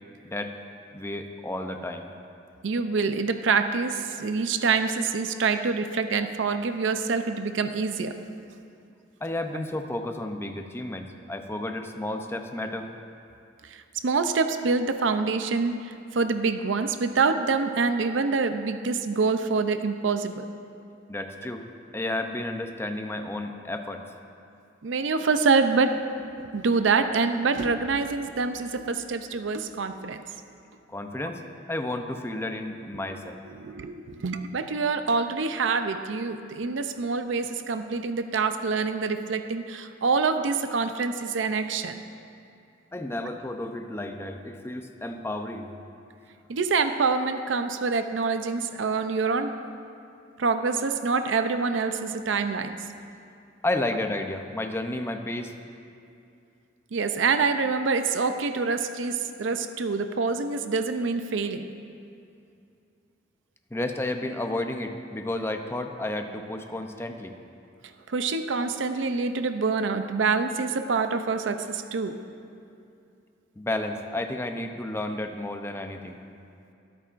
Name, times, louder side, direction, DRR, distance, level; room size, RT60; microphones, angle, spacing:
voice 1, 0.9-2.1 9.2-12.9 21.1-21.7 21.9-24.0 30.9-31.4 31.7-33.4 42.9-45.7 53.6-55.5 63.7-67.3 73.6-76.2, left 1 dB, 15° left, 5 dB, 0.6 m, -32 dB
voice 2, 2.6-8.1 13.7-15.8 16.1-20.5 24.8-25.9 26.4-30.2 33.5-42.0 46.5-49.5 50.4-52.8 56.9-61.7 68.1-72.2, right 4 dB, 80° right, 8 dB, 0.6 m, -26 dB
22.5 x 8.4 x 2.5 m, 2.5 s
head